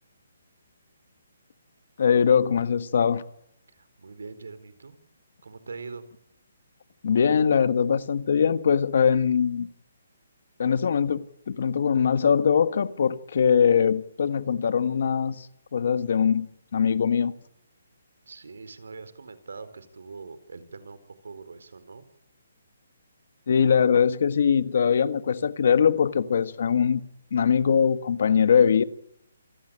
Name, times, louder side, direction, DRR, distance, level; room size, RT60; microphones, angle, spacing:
voice 1, 2.0-3.2 7.0-9.7 10.6-17.3 23.5-27.0 27.3-28.8, left 7 dB, 45° left, 13 dB, 1.5 m, -22 dB
voice 2, 3.8-5.0 5.4-6.1 18.3-22.0, right 4 dB, 85° right, 13 dB, 4.2 m, -42 dB
28.0 x 18.0 x 8.9 m, 0.76 s
hypercardioid pair, 180°, 0 cm